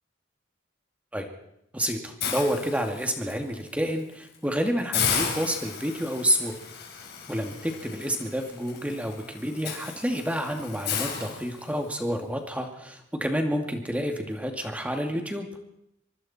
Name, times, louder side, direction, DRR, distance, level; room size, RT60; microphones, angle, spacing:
voice 1, 1.7-6.6 7.3-15.5, equal, 10° right, 3 dB, 2.4 m, -29 dB
Hiss, 2.2-3.3 3.8-4.0 4.3-4.4 4.9-12.0, left 7 dB, 60° left, 4.6 m, -33 dB
24.5 x 24.0 x 4.4 m, 0.78 s
head